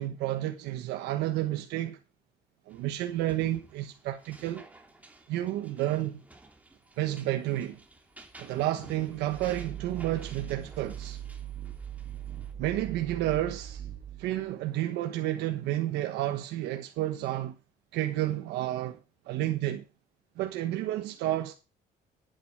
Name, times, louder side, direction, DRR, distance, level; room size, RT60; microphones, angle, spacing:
voice 1, 0.0-2.0 2.7-4.6 5.3-6.2 7.0-7.8 8.4-11.2 12.6-13.9 14.2-17.6 17.9-19.0 19.3-19.8 20.4-21.5, right 14 dB, 90° right, 1.3 m, -31 dB
sound 1, 2.7-12.5, right 2 dB, 10° right, 3.0 m, -54 dB
sound 2, 9.0-14.5, right 10 dB, 50° right, 2.8 m, -41 dB
11.0 x 9.4 x 4.8 m
cardioid pair, 110°, 17 cm